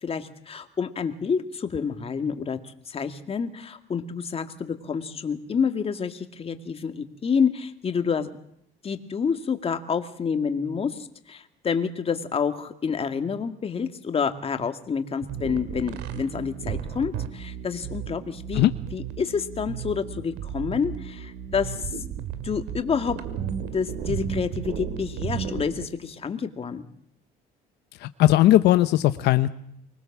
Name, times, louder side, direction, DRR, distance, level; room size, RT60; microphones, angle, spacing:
voice 1, 0.0-8.3 8.8-18.6 18.9-21.8 22.4-23.2 23.7-26.8, left 6 dB, 35° left, 7 dB, 2.2 m, -28 dB
sound 1, 15.2-25.9, right 8 dB, 90° right, 2.2 m, -34 dB
voice 2, 28.0-29.5, left 14 dB, 80° left, 11 dB, 0.9 m, -18 dB
25.0 x 20.0 x 7.4 m, 0.70 s
cardioid pair, 110°, 17 cm